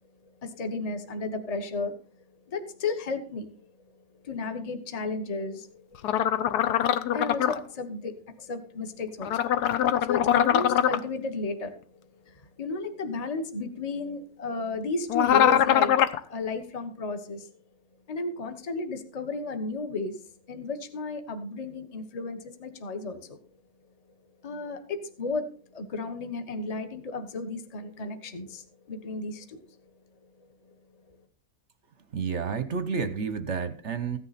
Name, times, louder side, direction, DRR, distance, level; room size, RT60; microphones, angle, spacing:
voice 1, 0.4-2.0 2.5-3.5 4.2-5.8 7.1-9.6 10.0-16.0 16.3-17.5 18.1-20.2 20.5-23.4 24.4-29.6, left 3 dB, 25° left, 6 dB, 1.1 m, -33 dB
sound 1, 6.0-7.5 9.2-11.0 15.1-16.2, left 10 dB, 65° left, 1.1 m, -23 dB
voice 2, 32.1-34.2, right 5 dB, 50° right, 10 dB, 1.0 m, -30 dB
15.5 x 9.7 x 4.2 m, 0.44 s
omnidirectional pair, 2.1 m